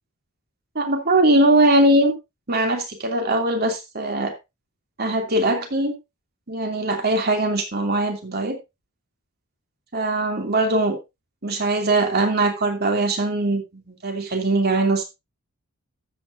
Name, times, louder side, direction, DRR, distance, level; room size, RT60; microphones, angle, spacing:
voice 1, 0.7-2.1 2.5-4.3 5.0-5.9 6.5-8.6 9.9-11.0 11.4-15.0, right 2 dB, 45° right, 4 dB, 2.7 m, -21 dB
12.5 x 8.6 x 2.6 m, 0.23 s
head